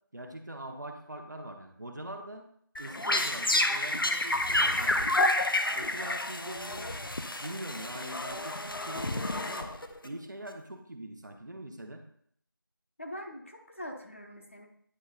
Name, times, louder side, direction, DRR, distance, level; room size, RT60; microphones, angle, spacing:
voice 1, 0.1-2.5 2.8-5.2 5.7-7.0 7.4-9.7 10.0-12.0, right 1 dB, 55° right, 4 dB, 1.0 m, -42 dB
sound 1, 2.8-10.1, left 1 dB, 75° left, 0.8 m, -29 dB
sound 2, 4.3-5.8 6.5-9.9, equal, 55° left, 1.1 m, -46 dB
voice 2, 13.0-14.7, equal, 35° left, 2 dB, 0.8 m, -43 dB
9.5 x 3.2 x 3.8 m, 0.66 s
figure-of-eight pair, 175°, 12 cm